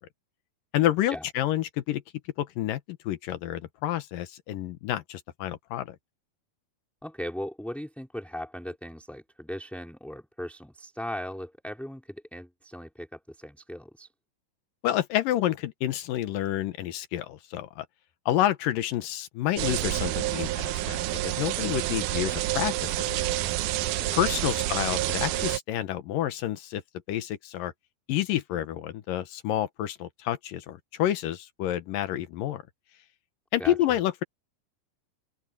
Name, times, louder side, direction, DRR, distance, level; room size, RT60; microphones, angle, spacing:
voice 1, 0.7-2.0 2.4-6.0 14.8-17.9 18.3-23.4 24.1-26.8 27.1-27.7 28.1-32.6 33.5-34.2, left 13 dB, 70° left, 2.6 m, -29 dB
voice 2, 7.0-14.1 24.4-24.7 33.6-34.0, equal, ahead, 2.9 m, -38 dB
sound 1, 19.6-25.6, right 15 dB, 85° right, 1.9 m, -28 dB
open air
omnidirectional pair, 4.3 m